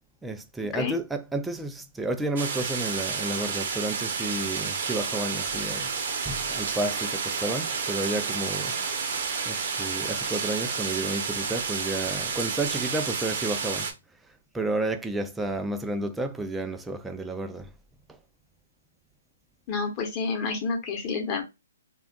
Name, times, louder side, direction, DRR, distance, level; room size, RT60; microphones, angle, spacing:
voice 1, 0.2-5.9 6.3-8.7 9.5-13.9 14.5-17.7 18.1-18.2, right 2 dB, 5° right, 0.4 m, -31 dB
sound 1, 2.4-13.9, right 5 dB, 55° right, 0.7 m, -30 dB
voice 2, 19.7-21.4, left 4 dB, 30° left, 0.9 m, -29 dB
2.3 x 2.1 x 3.5 m
hypercardioid pair, 135°, 0 cm